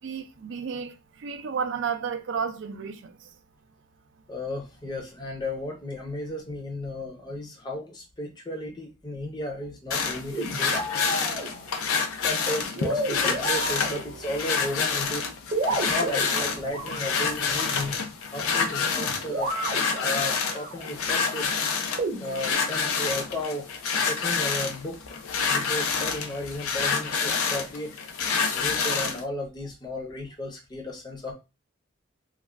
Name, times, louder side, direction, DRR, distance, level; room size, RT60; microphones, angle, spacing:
voice 1, 0.0-3.1, right 6 dB, 60° right, 0.4 m, -32 dB
voice 2, 4.3-10.7 12.2-15.2 15.7-18.0 18.3-19.6 20.0-21.5 22.2-23.7 24.1-28.0 28.5-31.3, left 1 dB, 20° left, 0.6 m, -34 dB
sound 1, 9.9-29.2, left 5 dB, 90° left, 0.5 m, -28 dB
sound 2, 10.3-11.9 12.6-14.5 15.5-17.3 18.9-20.8 22.0-22.5, right 2 dB, 40° right, 0.8 m, -32 dB
2.4 x 2.2 x 3.2 m
head